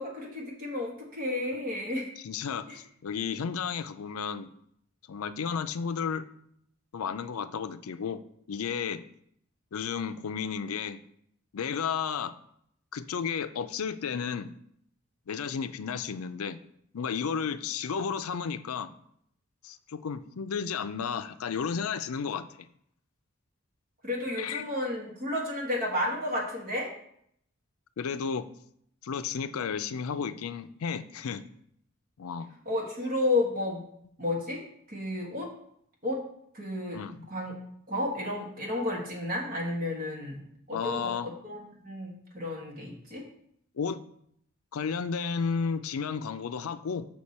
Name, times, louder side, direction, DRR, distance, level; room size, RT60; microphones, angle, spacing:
voice 1, 0.0-2.1 2.7-2.8 24.0-26.9 32.6-33.8 34.2-34.6 34.9-35.5 36.0-36.2 36.5-37.0 37.3-37.6 37.9-40.4 40.7-43.2, left 2 dB, 40° right, -2 dB, 1.7 m, -32 dB
voice 2, 2.2-4.5 5.1-6.2 6.9-8.2 8.5-9.0 9.7-11.0 11.5-12.3 12.9-14.5 15.3-16.6 16.9-18.9 19.6-22.5 24.4-24.7 28.0-28.5 29.0-31.4 32.2-32.5 36.9-37.3 40.7-41.3 43.8-44.0 44.7-47.1, left 6 dB, 80° left, 11 dB, 0.4 m, -33 dB
6.2 x 5.8 x 4.2 m, 0.70 s
head